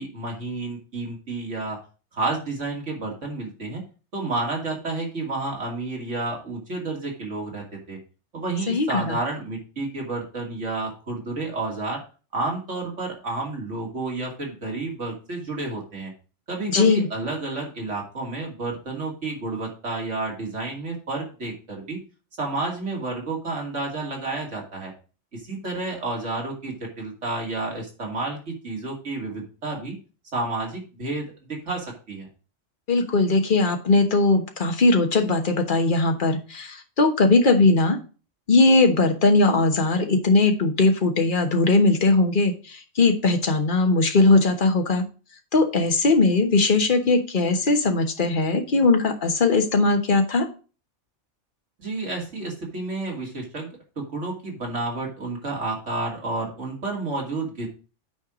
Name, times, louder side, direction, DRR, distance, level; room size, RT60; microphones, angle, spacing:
voice 1, 0.0-1.8 2.1-3.8 4.1-8.0 8.3-12.0 12.3-16.1 16.5-22.0 22.4-24.9 25.3-30.0 30.3-32.3 51.8-53.7 54.0-57.7, right 2 dB, 75° right, -1 dB, 2.9 m, -30 dB
voice 2, 8.7-9.2 16.7-17.0 32.9-38.0 38.5-45.0 45.5-50.5, left 3 dB, 45° left, 4 dB, 1.3 m, -19 dB
9.3 x 4.6 x 5.0 m, 0.35 s
omnidirectional pair, 1.2 m